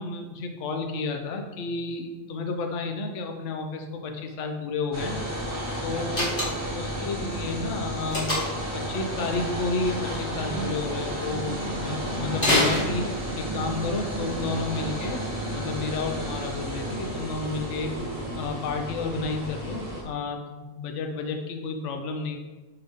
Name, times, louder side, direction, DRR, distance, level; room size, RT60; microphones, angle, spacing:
voice 1, 0.0-5.2 5.8-8.3 8.7-15.2 15.5-17.9 18.3-22.4, left 3 dB, 70° left, 4 dB, 1.0 m, -31 dB
sound 1, 4.9-20.0, right 1 dB, 15° right, 1.4 m, -32 dB
Slam, 6.1-6.8 8.1-8.7 12.4-13.5, left 1 dB, 40° left, 2.1 m, -25 dB
5.7 x 5.6 x 3.5 m, 1.2 s
omnidirectional pair, 1.3 m